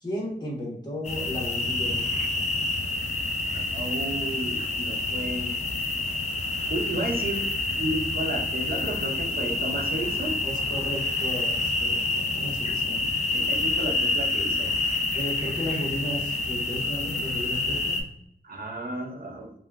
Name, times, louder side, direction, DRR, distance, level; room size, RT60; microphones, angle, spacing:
voice 1, 0.0-2.4 10.4-13.1 15.1-18.0, equal, 25° left, -4 dB, 1.2 m, -34 dB
sound 1, 1.0-18.0, left 2 dB, 40° left, 0.5 m, -28 dB
voice 2, 3.5-5.6 6.7-10.4 13.3-14.8 18.4-19.5, right 1 dB, 60° right, 2 dB, 0.6 m, -33 dB
2.9 x 2.3 x 2.3 m, 0.70 s
wide cardioid pair, 85°, 17 cm